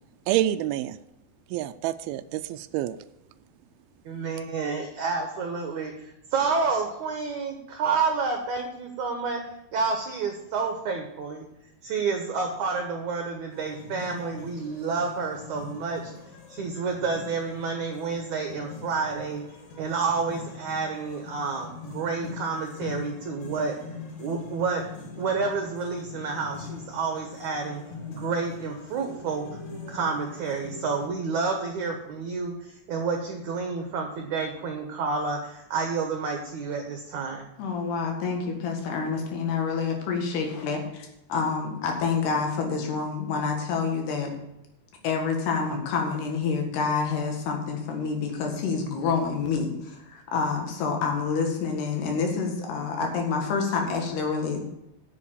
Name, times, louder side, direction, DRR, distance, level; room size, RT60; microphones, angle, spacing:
voice 1, 0.3-1.0 1.5-3.0, right 13 dB, 80° right, 9 dB, 2.3 m, -27 dB
voice 2, 4.1-9.4 9.7-11.5 11.8-16.1 16.5-19.4 19.8-23.8 24.2-24.8 25.2-27.8 28.1-29.6 29.9-37.5, right 4 dB, 65° right, 3 dB, 2.0 m, -29 dB
sound 1, 13.5-31.1, left 4 dB, 55° left, 3.0 m, -42 dB
voice 3, 37.6-44.3 45.0-54.6, left 5 dB, 85° left, 2 dB, 3.9 m, -28 dB
8.3 x 7.3 x 8.5 m, 0.86 s
omnidirectional pair, 4.6 m